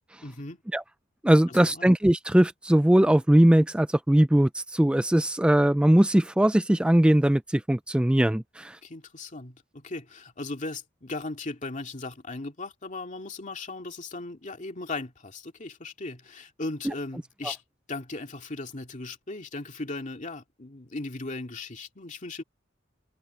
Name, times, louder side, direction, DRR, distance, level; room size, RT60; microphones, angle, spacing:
voice 1, 0.2-0.6 1.5-1.8 8.8-17.6 17.9-22.4, left 2 dB, 40° left, 2.3 m, -37 dB
voice 2, 1.2-8.8, right 1 dB, 5° right, 0.3 m, -20 dB
head